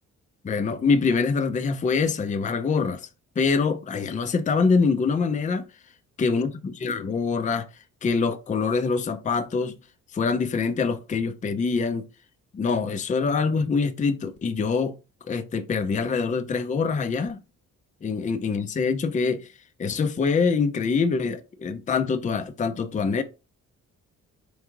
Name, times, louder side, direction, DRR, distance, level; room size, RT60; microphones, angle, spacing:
voice 1, 0.4-3.1 3.4-5.6 6.2-7.7 8.0-9.7 10.1-12.1 12.5-14.9 15.3-17.4 18.0-19.5 19.8-23.2, left 5 dB, 25° left, 0.5 m, -24 dB
4.6 x 2.7 x 3.7 m
cardioid pair, 90°, 30 cm